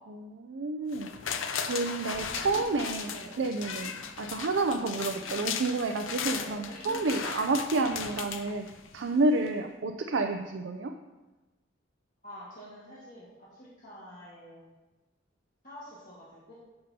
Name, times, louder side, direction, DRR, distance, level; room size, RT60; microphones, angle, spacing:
voice 1, 0.1-1.4 1.6-3.9 4.2-8.7 8.9-10.9, right 3 dB, 70° right, 5 dB, 0.5 m, -30 dB
sound 1, 0.9-9.1 9.5-9.6, left 7 dB, 85° left, 0.6 m, -37 dB
voice 2, 2.0-3.3 6.3-7.1 12.2-14.7 15.6-16.5, equal, 45° left, -8 dB, 1.7 m, -48 dB
10.5 x 6.8 x 2.8 m, 1.1 s
head